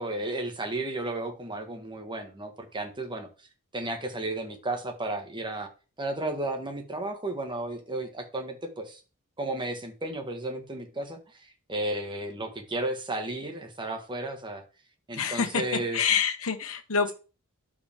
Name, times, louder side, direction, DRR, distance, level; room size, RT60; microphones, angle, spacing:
voice 1, 0.0-3.3 3.7-5.7 6.0-9.0 9.4-14.6 15.1-16.0, right 2 dB, 20° right, 4 dB, 1.6 m, -33 dB
voice 2, 15.1-15.6 15.9-17.1, left 6 dB, 70° left, 5 dB, 1.3 m, -26 dB
12.0 x 5.1 x 3.6 m, 0.33 s
head